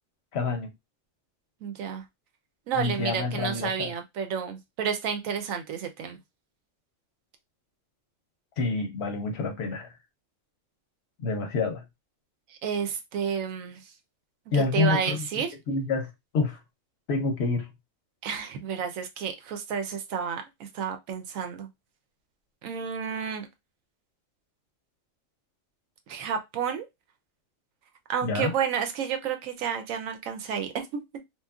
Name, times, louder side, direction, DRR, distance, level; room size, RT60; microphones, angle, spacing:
voice 1, 0.3-0.7 2.7-3.9 8.6-9.9 11.2-11.8 14.5-15.2 15.7-16.6 17.1-17.7 28.2-28.5, left 3 dB, 65° left, 0.7 m, -28 dB
voice 2, 1.6-2.0 2.7-6.2 12.5-13.8 14.5-15.5 18.2-21.7 22.6-23.5 26.1-26.9 28.1-31.0, right 7 dB, 90° right, 1.0 m, -31 dB
3.0 x 2.4 x 2.3 m
omnidirectional pair, 1.3 m